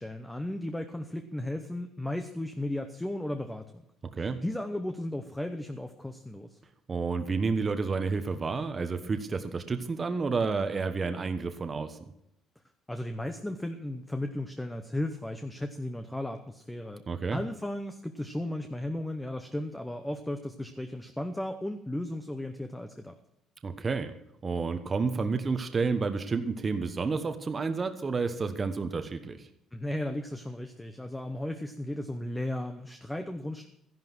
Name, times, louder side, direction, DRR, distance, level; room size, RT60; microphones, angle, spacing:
voice 1, 0.0-3.8 4.2-6.6 12.9-17.0 17.3-23.2 29.7-33.7, left 1 dB, 5° left, 7 dB, 0.9 m, -35 dB
voice 2, 6.9-12.0 17.1-17.4 23.6-24.1 24.4-29.5, right 4 dB, 25° right, 8 dB, 1.1 m, -30 dB
13.5 x 11.0 x 6.1 m, 0.78 s
cardioid pair, 150°, 0 cm